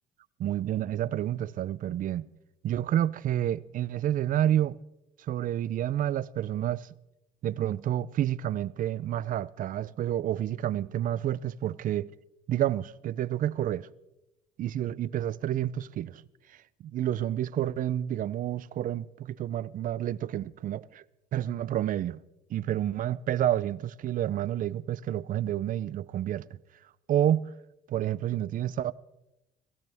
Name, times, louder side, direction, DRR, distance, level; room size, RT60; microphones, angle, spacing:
voice 1, 0.4-2.2 2.6-4.8 5.2-6.9 7.4-12.1 12.5-13.9 14.6-16.2 16.5-21.0 21.3-22.2 22.5-26.5 27.1-27.5 27.9-28.9, right 11 dB, 55° right, 0.5 m, -29 dB
19.0 x 16.5 x 3.5 m
cardioid pair, 110°, 17 cm